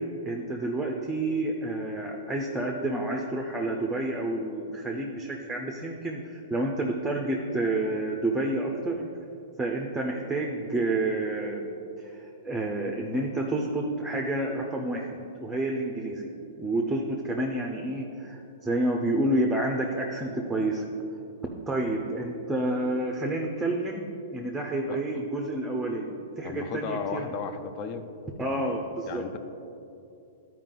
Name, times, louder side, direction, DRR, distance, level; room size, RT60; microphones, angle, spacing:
voice 1, 0.0-9.1 9.6-11.7 12.0-16.3 16.6-20.9 21.7-24.1 24.3-27.3 28.4-29.2, right 2 dB, 5° right, 1 dB, 0.6 m, -29 dB
voice 2, 26.4-28.1 29.1-29.4, left 6 dB, 40° left, 9 dB, 0.6 m, -34 dB
11.5 x 4.8 x 3.8 m, 2.7 s
hypercardioid pair, 140°, 0 cm